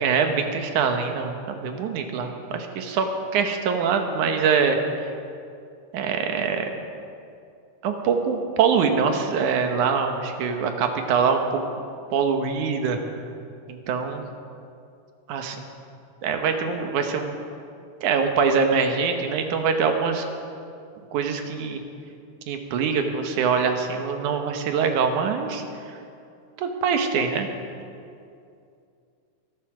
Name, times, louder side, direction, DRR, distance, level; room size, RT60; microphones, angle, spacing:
voice 1, 0.0-3.1 3.3-5.1 5.9-6.7 7.8-11.6 12.1-13.0 13.7-14.2 15.3-15.6 16.2-17.3 18.0-20.3 21.1-21.8 22.5-25.6 26.6-27.5, right 6 dB, 70° right, 5 dB, 2.4 m, -24 dB
23.0 x 8.4 x 6.1 m, 2.5 s
omnidirectional pair, 3.9 m